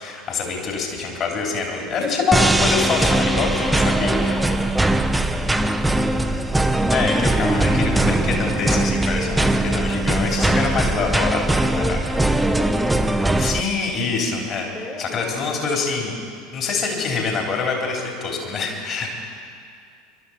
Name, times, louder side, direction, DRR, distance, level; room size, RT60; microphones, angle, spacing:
voice 1, 0.0-4.3 6.9-11.8 13.4-14.7 15.0-16.2 16.5-19.1, left 4 dB, 40° left, 0 dB, 3.4 m, -25 dB
voice 2, 1.7-2.1 3.7-6.7 9.2-9.8 11.7-13.5 14.7-15.4, left 2 dB, 15° left, 0 dB, 1.9 m, -33 dB
sound 1, 2.3-13.6, right 2 dB, 5° right, 0.7 m, -20 dB
23.0 x 12.0 x 4.3 m, 2.3 s
figure-of-eight pair, 70°, 0 cm